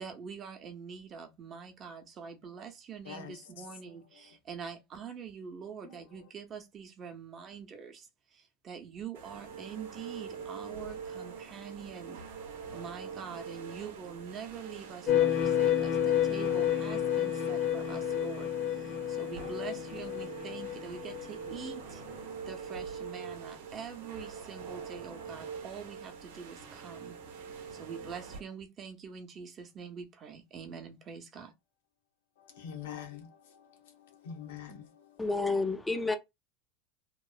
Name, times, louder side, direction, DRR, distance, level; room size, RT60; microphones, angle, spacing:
voice 1, 0.0-12.2 12.7-22.0 22.5-27.2 27.7-31.5, right 6 dB, 35° right, 0.7 m, -45 dB
voice 2, 3.0-3.7 5.8-6.0 32.4-35.3, left 8 dB, 90° left, 0.9 m, -46 dB
sound 1, 9.1-28.4, right 6 dB, 85° right, 0.8 m, -44 dB
sound 2, 15.1-21.7, left 10 dB, 50° left, 0.7 m, -30 dB
voice 3, 35.2-36.2, left 3 dB, 10° left, 0.4 m, -29 dB
2.9 x 2.0 x 2.3 m
supercardioid pair, 130°, 0 cm